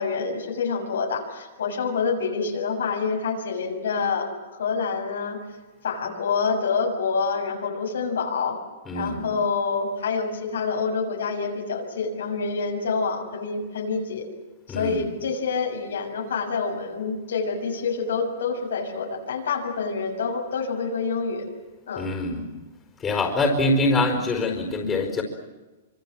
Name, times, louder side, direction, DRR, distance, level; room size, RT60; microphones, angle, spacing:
voice 1, 0.0-4.3 4.6-5.4 5.8-8.6 8.9-14.2 14.7-21.4 21.9-22.1, left 5 dB, 85° left, 2 dB, 6.8 m, -27 dB
voice 2, 8.9-9.2 14.7-15.0 22.0-22.4 23.0-25.2, left 2 dB, 15° left, 2 dB, 4.8 m, -24 dB
26.0 x 25.5 x 7.6 m, 1.2 s
hypercardioid pair, 145°, 0 cm